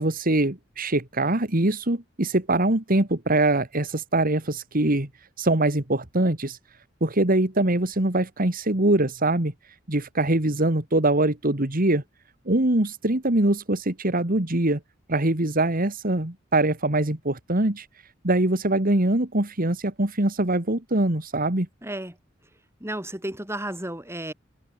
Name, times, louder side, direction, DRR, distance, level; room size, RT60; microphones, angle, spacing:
voice 1, 0.0-5.1 5.4-6.6 7.0-9.5 9.9-12.0 12.5-14.8 15.1-17.9 18.2-21.7, right 2 dB, 45° right, 2.4 m, -23 dB
voice 2, 21.8-22.1 22.8-24.3, right 1 dB, 15° right, 7.7 m, -32 dB
head